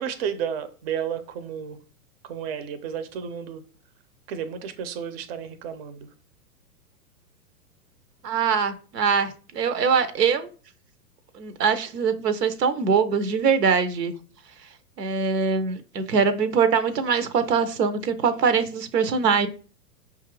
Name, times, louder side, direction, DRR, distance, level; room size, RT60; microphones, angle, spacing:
voice 1, 0.0-1.8 2.2-3.6 4.3-6.1, right 8 dB, 40° right, 0.5 m, -32 dB
voice 2, 8.2-10.5 11.4-14.1 15.0-19.5, right 6 dB, 85° right, 0.7 m, -23 dB
5.4 x 2.4 x 3.0 m
hypercardioid pair, 110°, 47 cm